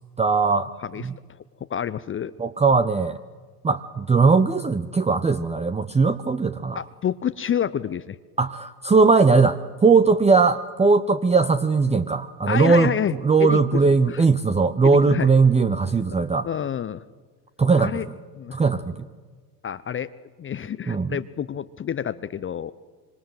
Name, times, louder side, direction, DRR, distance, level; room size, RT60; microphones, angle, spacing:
voice 1, 0.2-0.7 1.0-1.1 2.4-3.2 3.6-6.8 8.4-12.9 13.2-16.5 17.6-18.0 18.5-18.9 20.9-21.1, right 4 dB, 15° right, 10 dB, 0.9 m, -19 dB
voice 2, 1.7-2.3 6.0-6.2 6.7-8.2 12.5-13.1 13.4-14.2 14.8-15.3 16.1-16.2 16.4-17.0 17.8-18.1 18.3-18.6 19.6-20.1 20.4-22.7, left 9 dB, 25° left, 13 dB, 0.8 m, -28 dB
26.0 x 25.5 x 7.7 m, 1.4 s
figure-of-eight pair, 70°, 49 cm